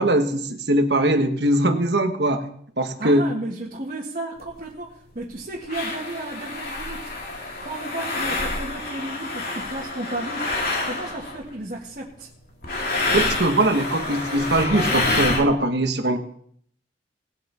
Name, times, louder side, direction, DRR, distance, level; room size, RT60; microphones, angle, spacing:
voice 1, 0.0-2.5 2.8-3.3 13.1-16.3, right 1 dB, 60° right, 7 dB, 1.3 m, -21 dB
voice 2, 3.0-7.1 7.6-10.5 10.8-12.3, right 1 dB, 45° right, -5 dB, 2.0 m, -33 dB
sound 1, 4.4-4.5 5.2-5.3 5.7-11.5 12.6-15.4, left 2 dB, 55° left, 2.2 m, -27 dB
19.5 x 8.0 x 4.3 m, 0.64 s
head